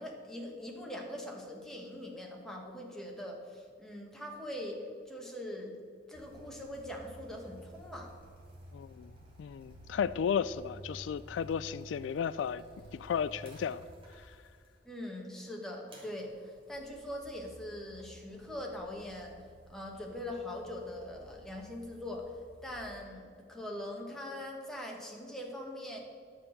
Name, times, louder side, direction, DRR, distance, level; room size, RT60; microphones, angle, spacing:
voice 1, 0.0-4.8 5.1-5.8 6.1-8.1 14.8-26.0, left 1 dB, 5° left, 1.6 m, -42 dB
sound 1, 6.1-14.8 15.9-22.9, right 1 dB, 30° right, 2.8 m, -53 dB
voice 2, 8.7-9.1 9.4-12.6 12.9-13.9 14.1-14.4, left 7 dB, 80° left, 0.3 m, -34 dB
10.0 x 7.1 x 6.6 m
head